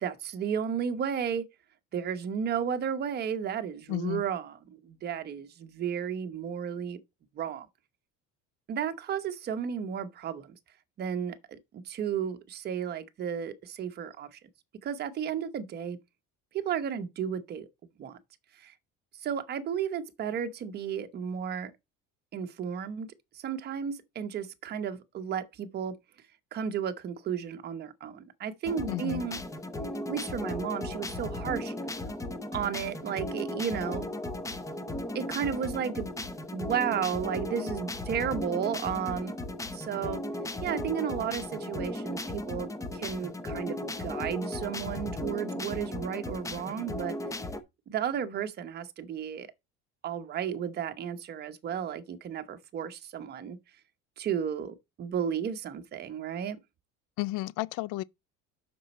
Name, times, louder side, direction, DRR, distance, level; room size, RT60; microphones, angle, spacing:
voice 1, 0.0-1.5 1.9-7.0 7.3-7.7 8.7-10.5 11.0-14.4 14.8-16.0 16.5-17.7 18.0-18.2 18.6-18.7 19.2-21.7 22.3-25.9 26.5-29.4 30.1-31.7 32.5-34.1 35.1-36.1 36.5-39.3 39.7-40.2 40.6-47.2 47.9-49.5 50.0-53.6 54.2-56.6, right 8 dB, 30° right, 0.9 m, -33 dB
voice 2, 3.9-4.2 28.9-29.2 57.2-58.0, left 18 dB, 70° left, 0.5 m, -32 dB
sound 1, 28.6-47.6, left 1 dB, 10° left, 0.6 m, -36 dB
7.4 x 6.1 x 4.1 m
cardioid pair, 175°, 32 cm